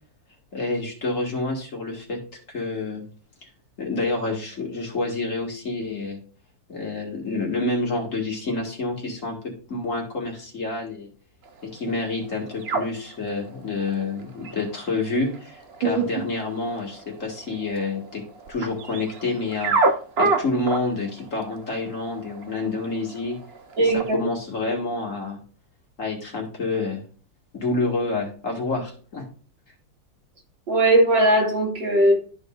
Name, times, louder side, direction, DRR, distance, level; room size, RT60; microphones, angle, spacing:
voice 1, 0.5-2.2 2.5-3.0 3.8-6.2 6.7-9.4 9.7-11.1 11.6-18.2 18.5-19.8 20.2-23.4 23.8-25.4 26.0-27.0 27.5-29.3, left 3 dB, 45° left, -1 dB, 2.4 m, -28 dB
sound 1, 11.4-24.1, right 3 dB, 45° right, 0.8 m, -31 dB
voice 2, 15.8-16.2 23.8-24.2 30.7-32.1, right 1 dB, 80° right, -1 dB, 3.0 m, -19 dB
13.0 x 5.2 x 2.5 m, 0.40 s
omnidirectional pair, 2.0 m